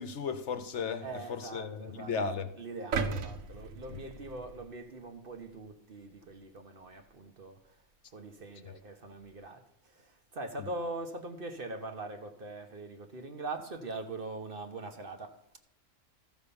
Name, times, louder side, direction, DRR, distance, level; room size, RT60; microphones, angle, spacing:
voice 1, 0.0-2.5 3.9-4.0 8.6-8.7, left 5 dB, 65° left, 1.1 m, -35 dB
voice 2, 1.0-7.9 8.1-15.6, right 2 dB, 45° right, 1.1 m, -42 dB
sound 1, 2.9-5.1 5.6-5.7, right 4 dB, 80° right, 1.3 m, -36 dB
13.5 x 5.6 x 6.9 m
omnidirectional pair, 1.4 m